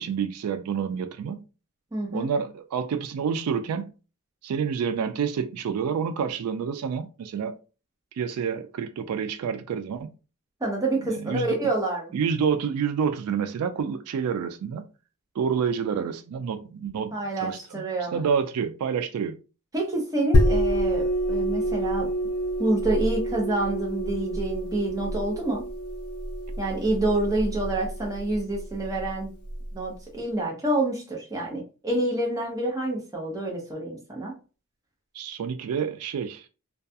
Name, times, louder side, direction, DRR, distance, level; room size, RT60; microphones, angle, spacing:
voice 1, 0.0-1.4 2.1-3.9 4.4-7.6 8.2-10.1 11.1-11.6 12.1-14.9 15.4-17.8 18.1-19.4 35.1-36.5, right 6 dB, 85° right, 0.3 m, -28 dB
voice 2, 1.9-2.3 10.6-12.1 17.1-18.2 19.7-22.1 22.6-25.6 26.6-29.3 29.7-34.3, right 2 dB, 15° right, 0.7 m, -27 dB
sound 1, 20.3-29.7, equal, 70° left, 0.4 m, -27 dB
2.3 x 2.2 x 2.6 m
head